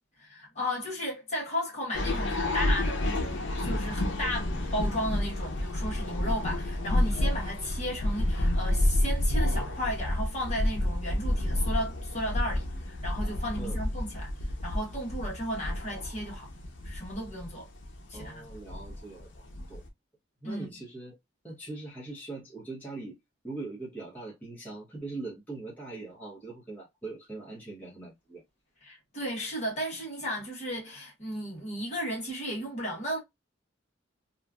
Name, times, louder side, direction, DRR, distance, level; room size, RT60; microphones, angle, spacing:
voice 1, 0.2-14.3 14.6-16.5 16.8-17.7 18.1-18.4 20.4-20.7 28.8-33.2, equal, 35° left, 1.3 m, -34 dB
sound 1, 1.9-19.9, left 1 dB, 70° left, 0.7 m, -30 dB
voice 2, 18.1-19.8 20.4-21.2 21.4-23.1 23.4-28.4, right 3 dB, 10° left, 1.0 m, -41 dB
3.0 x 2.4 x 2.3 m
head